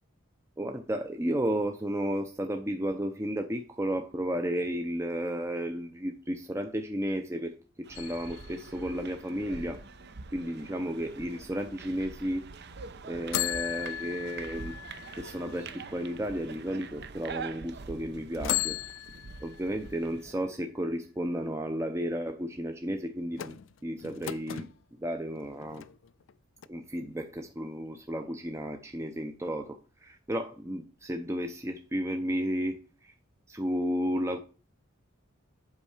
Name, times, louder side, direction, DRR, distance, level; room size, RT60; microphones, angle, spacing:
voice 1, 0.6-9.8 10.3-12.5 13.1-14.8 15.2-18.8 19.4-25.8 26.7-33.1 33.5-34.4, equal, 15° right, 5 dB, 0.6 m, -33 dB
sound 1, 7.8-20.4, right 4 dB, 55° right, 0.7 m, -45 dB
sound 2, 7.9-9.8 13.3-16.4 17.0-17.1 18.4-20.2 23.3-24.7 25.4-26.3 26.6-26.7, left 13 dB, 65° left, 0.4 m, -37 dB
8.3 x 5.4 x 4.9 m, 0.34 s
head